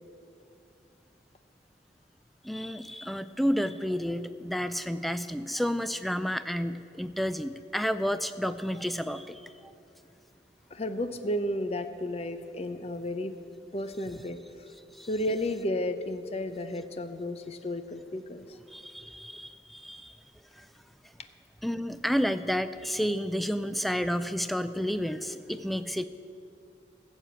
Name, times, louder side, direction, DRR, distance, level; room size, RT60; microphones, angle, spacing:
voice 1, 2.4-9.7 14.9-15.1 18.7-20.2 20.5-20.7 21.6-26.1, equal, ahead, 12 dB, 0.3 m, -31 dB
voice 2, 10.7-13.4 13.7-14.7 15.1-18.4, left 1 dB, 35° left, 10 dB, 0.6 m, -33 dB
13.5 x 7.4 x 8.1 m, 2.6 s
head